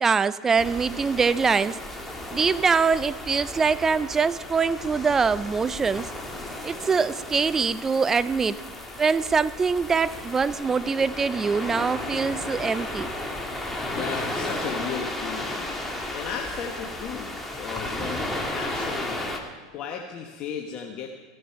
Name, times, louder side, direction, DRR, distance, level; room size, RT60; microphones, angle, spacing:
voice 1, 0.0-1.8 2.3-6.1 6.6-8.6 9.0-13.1, right 5 dB, 20° right, 17 dB, 0.4 m, -23 dB
sound 1, 0.6-19.4, left 1 dB, 5° left, 1.6 m, -34 dB
voice 2, 13.9-15.6 16.1-18.2 18.5-19.2 19.7-21.1, left 7 dB, 45° left, 2 dB, 1.0 m, -35 dB
15.5 x 6.8 x 5.6 m, 1.4 s
hypercardioid pair, 95°, 2 cm